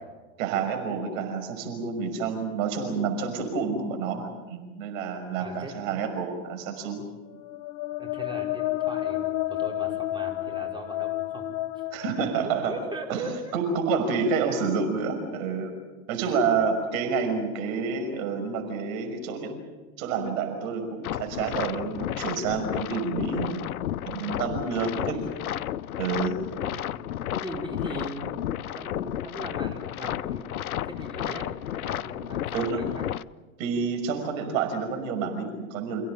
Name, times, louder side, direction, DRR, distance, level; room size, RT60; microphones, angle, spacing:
voice 1, 0.4-7.0 11.9-12.7 13.1-13.3 13.5-15.7 16.1-19.5 20.0-23.7 24.1-25.2 26.0-26.4 32.5-32.8 33.6-36.0, right 5 dB, 65° right, 5 dB, 6.0 m, -28 dB
voice 2, 5.4-5.7 8.0-11.5 11.7-13.5 16.2-16.4 24.7-25.3 26.5-26.9 27.3-33.1, right 1 dB, 10° right, 0 dB, 5.1 m, -40 dB
sound 1, 7.4-13.2, left 15 dB, 55° left, 1.1 m, -31 dB
sound 2, 21.0-33.2, left 12 dB, 90° left, 0.7 m, -32 dB
28.5 x 17.0 x 9.1 m, 1.3 s
hypercardioid pair, 100°, 42 cm